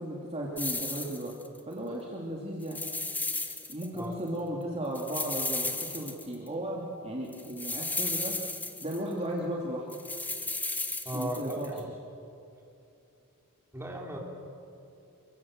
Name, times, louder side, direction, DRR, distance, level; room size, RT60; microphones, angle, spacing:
voice 1, 0.0-1.3 1.7-2.8 3.7-8.3 8.8-9.9 11.1-11.8, right 1 dB, 30° right, -3 dB, 2.9 m, -35 dB
sound 1, 0.6-1.6 2.6-4.0 4.3-4.4 5.0-6.5 7.3-9.1 9.9-11.8, left 2 dB, 10° left, 1.7 m, -34 dB
voice 2, 11.0-11.9 13.7-14.2, right 1 dB, 10° right, -1 dB, 5.0 m, -36 dB
29.5 x 23.5 x 7.5 m, 2.7 s
head